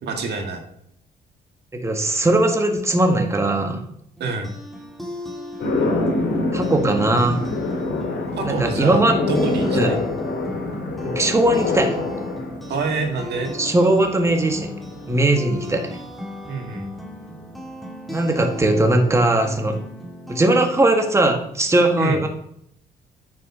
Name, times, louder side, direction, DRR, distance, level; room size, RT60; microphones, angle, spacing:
voice 1, 0.0-0.6 4.2-4.5 8.4-10.0 12.7-13.5 16.5-16.9 22.0-22.2, right 3 dB, 70° right, 4 dB, 2.0 m, -26 dB
voice 2, 1.7-3.8 6.5-7.4 8.4-9.2 9.7-9.9 11.0-12.0 13.6-14.7 15.1-15.9 18.1-19.8 20.3-22.3, right 2 dB, 15° right, 4 dB, 1.6 m, -19 dB
sound 1, 4.2-21.1, equal, ahead, 1.8 m, -37 dB
sound 2, 5.6-16.0, left 2 dB, 75° left, 3.4 m, -26 dB
9.2 x 6.5 x 6.1 m, 0.72 s
cardioid pair, 95°, 18 cm